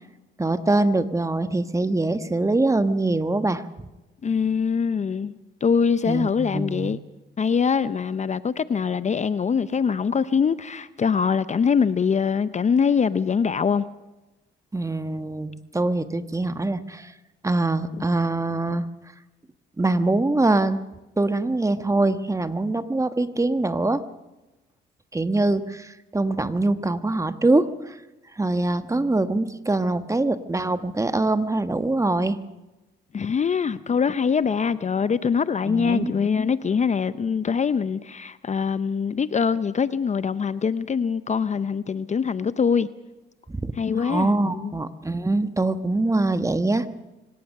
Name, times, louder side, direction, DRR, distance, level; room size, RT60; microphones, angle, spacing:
voice 1, 0.4-3.6 6.1-6.9 14.7-17.1 17.4-18.9 19.8-20.8 21.2-24.0 25.1-28.0 28.4-32.4 35.7-36.1 43.6-43.7 44.0-46.9, right 2 dB, 15° right, 11 dB, 1.4 m, -23 dB
voice 2, 4.2-7.0 7.4-13.8 33.1-42.9 43.8-44.7, left 6 dB, 35° left, 15 dB, 0.7 m, -23 dB
25.0 x 17.5 x 6.6 m, 1.0 s
cardioid pair, 90°, 20 cm